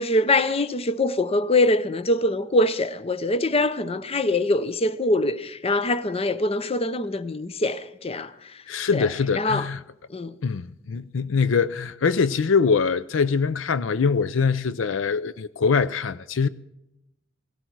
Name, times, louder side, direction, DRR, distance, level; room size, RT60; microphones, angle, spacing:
voice 1, 0.0-8.3 8.9-9.1 9.3-9.7 10.1-10.4, left 2 dB, 30° left, 0.7 m, -23 dB
voice 2, 8.7-9.8 10.4-16.5, left 5 dB, 75° left, 0.5 m, -23 dB
17.5 x 17.0 x 4.6 m
head